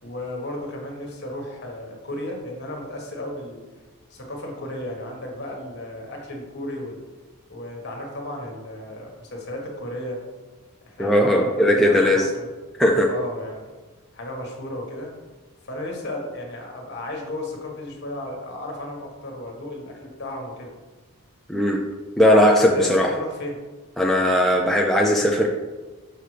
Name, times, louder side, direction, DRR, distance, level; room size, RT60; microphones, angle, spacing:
voice 1, 0.0-3.6 4.1-7.0 7.5-10.2 10.8-12.5 13.0-13.7 14.1-15.1 15.6-20.7 22.6-23.6, left 1 dB, 50° left, 0 dB, 1.4 m, -34 dB
voice 2, 11.0-12.3 12.8-13.1 21.5-21.8 22.2-23.1 24.0-25.5, left 1 dB, ahead, -1 dB, 0.4 m, -18 dB
6.7 x 5.8 x 3.2 m, 1.3 s
head